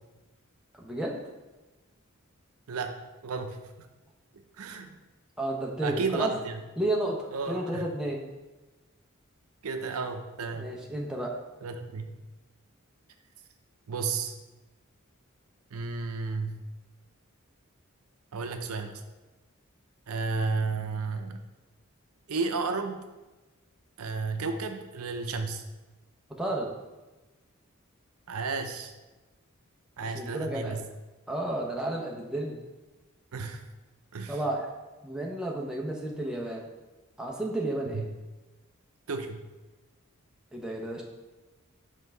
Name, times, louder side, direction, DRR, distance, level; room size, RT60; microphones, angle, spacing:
voice 1, 0.7-1.2 5.4-6.3 6.8-7.2 7.5-8.2 10.6-11.4 26.4-26.8 30.1-30.8 31.3-32.6 34.3-34.7 35.0-36.7 37.2-38.1 40.5-41.0, right 1 dB, 5° right, -2 dB, 0.7 m, -32 dB
voice 2, 2.7-3.6 4.6-5.0 5.8-6.6 7.3-7.9 9.6-10.7 11.6-12.2 13.9-14.3 15.7-16.6 18.3-19.0 20.1-21.4 22.3-23.0 24.0-25.6 28.3-28.9 30.0-30.8 33.3-33.7 34.1-34.4 37.9-38.1 39.1-39.4, right 4 dB, 85° right, 6 dB, 0.6 m, -33 dB
5.5 x 3.5 x 5.4 m, 1.1 s
head